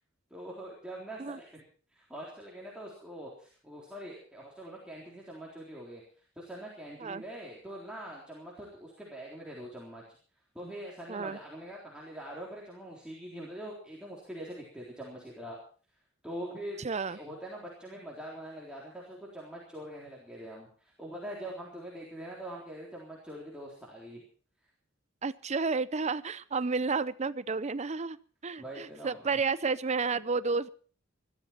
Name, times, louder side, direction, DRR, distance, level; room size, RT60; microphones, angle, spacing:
voice 1, 0.3-1.6 1.9-6.0 6.4-10.0 10.5-15.6 16.2-24.2 28.6-29.4, right 1 dB, 5° right, -4 dB, 3.8 m, -43 dB
voice 2, 16.8-17.2 25.2-28.2 28.4-30.7, right 4 dB, 35° right, 15 dB, 0.6 m, -31 dB
20.5 x 13.5 x 4.4 m, 0.41 s
head